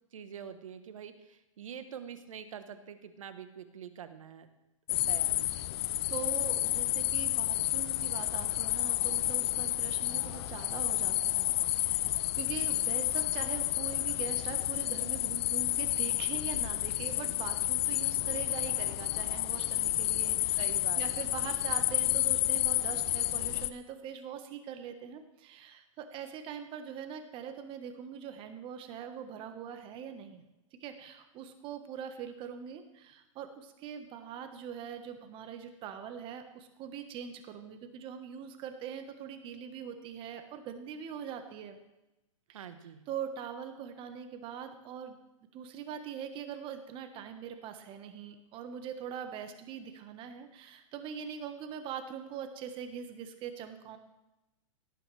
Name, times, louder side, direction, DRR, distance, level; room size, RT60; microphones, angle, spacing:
voice 1, 0.1-4.5 4.9-5.7 20.6-21.3 42.5-43.0, right 8 dB, 75° right, 10 dB, 1.3 m, -46 dB
sound 1, 4.9-23.7, left 15 dB, 50° left, 0.6 m, -30 dB
voice 2, 6.1-20.7 21.0-30.5 30.8-41.8 42.5-42.6 43.1-45.2 45.5-54.0, right 8 dB, 30° right, 8 dB, 1.3 m, -42 dB
17.0 x 9.1 x 3.4 m, 0.96 s
hypercardioid pair, 130°, 17 cm